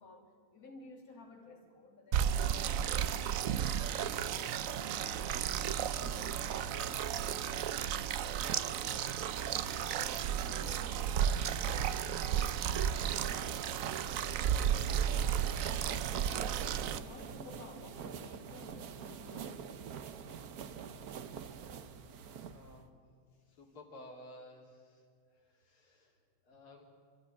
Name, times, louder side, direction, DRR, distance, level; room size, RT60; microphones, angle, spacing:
voice 1, 0.0-3.9 4.4-9.3 9.7-13.7 14.0-14.5 16.9-19.9 23.3-23.6, left 3 dB, 40° left, 0 dB, 3.0 m, -55 dB
sound 1, 2.1-17.0, right 9 dB, 80° right, 0.7 m, -33 dB
sound 2, 13.0-22.9, right 7 dB, 55° right, 1.2 m, -46 dB
voice 2, 22.5-23.0 23.5-25.1 25.3-26.8, left 1 dB, 85° left, 0 dB, 3.9 m, -55 dB
26.5 x 13.5 x 9.8 m, 2.2 s
omnidirectional pair, 2.3 m